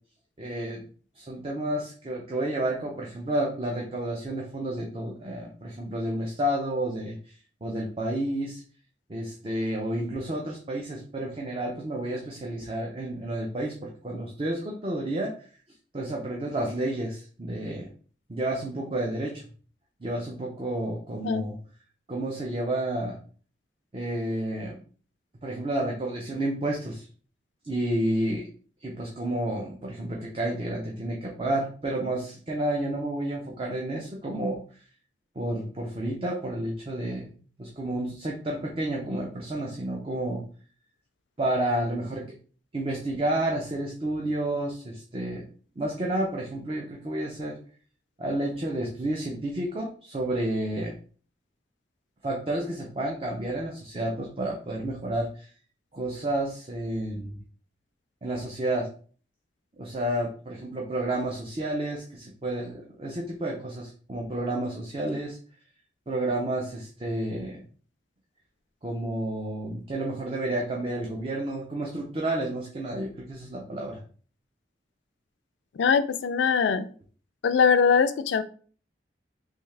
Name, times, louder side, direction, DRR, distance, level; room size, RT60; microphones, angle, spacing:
voice 1, 0.4-0.8 1.1-7.3 7.6-8.6 9.1-15.3 15.9-17.9 18.3-19.4 20.0-21.6 22.1-23.2 23.9-24.8 25.4-27.1 27.6-28.5 28.8-34.6 35.4-37.3 37.6-40.4 41.4-42.2 42.7-45.4 45.8-47.6 48.2-50.9 52.2-55.5 55.9-57.4 58.2-58.9 59.8-65.4 66.1-67.6 68.8-74.0, right 1 dB, 30° right, -1 dB, 0.5 m, -30 dB
voice 2, 75.8-76.8 77.4-78.4, left 6 dB, 80° left, 12 dB, 0.4 m, -22 dB
3.5 x 2.7 x 3.2 m, 0.42 s
head